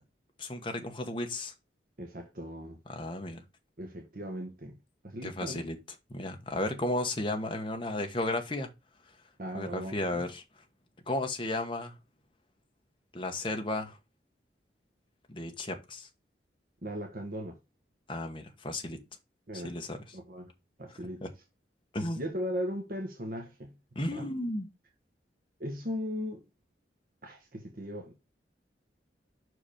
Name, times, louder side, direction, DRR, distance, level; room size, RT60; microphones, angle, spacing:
voice 1, 0.4-1.5 2.9-3.4 5.2-5.8 6.1-8.7 9.5-10.4 11.1-11.9 13.1-14.0 15.3-16.1 18.1-19.0 19.5-20.0 21.2-21.3 21.9-22.2 23.9-24.7, left 1 dB, 30° left, 1.2 m, -34 dB
voice 2, 2.0-2.8 3.8-4.8 5.0-5.7 9.4-10.2 16.8-17.6 19.5-20.5 20.8-21.2 22.2-23.7 24.1-24.3 25.6-26.4 27.2-28.1, equal, 55° right, 1.2 m, -38 dB
6.0 x 4.8 x 5.0 m
head